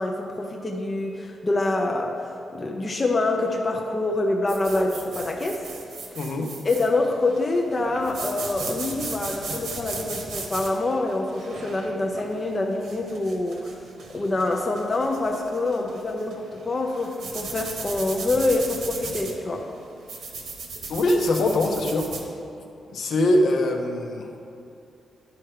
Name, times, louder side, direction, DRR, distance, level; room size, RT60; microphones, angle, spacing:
voice 1, 0.0-5.7 6.6-13.8 14.1-19.7, left 2 dB, 25° left, 1 dB, 0.6 m, -26 dB
sound 1, 4.5-22.3, right 4 dB, 70° right, 1.1 m, -37 dB
voice 2, 6.2-6.5 20.9-22.1 22.9-24.3, left 1 dB, 65° left, 3 dB, 0.9 m, -22 dB
10.5 x 4.5 x 5.0 m, 2.8 s
wide cardioid pair, 135°, 0 cm